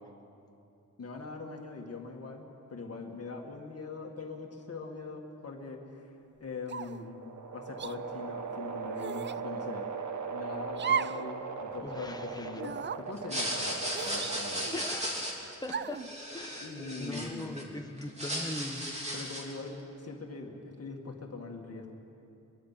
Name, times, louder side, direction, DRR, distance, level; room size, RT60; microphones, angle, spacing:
voice 1, 1.0-7.2 7.5-9.9 10.3-14.7 16.6-17.8 19.1-21.9, left 3 dB, 50° left, 1 dB, 2.0 m, -42 dB
sound 1, 6.6-14.9, right 5 dB, 65° right, 1.3 m, -39 dB
sound 2, 6.7-7.1 7.8-8.0 9.0-9.4 10.7-11.3 11.6-11.7 12.6-13.0 13.9-14.8 15.7-16.1, right 7 dB, 35° right, 0.4 m, -35 dB
voice 2, 11.8-12.6 14.7-15.2 15.5-16.0 16.3-16.7 17.0-18.9, left 1 dB, 10° left, 4 dB, 1.2 m, -40 dB
sound 3, 13.2-17.6 18.0-19.6, equal, 20° right, 3.1 m, -36 dB
22.5 x 22.5 x 5.8 m, 2.8 s
wide cardioid pair, 155°, 32 cm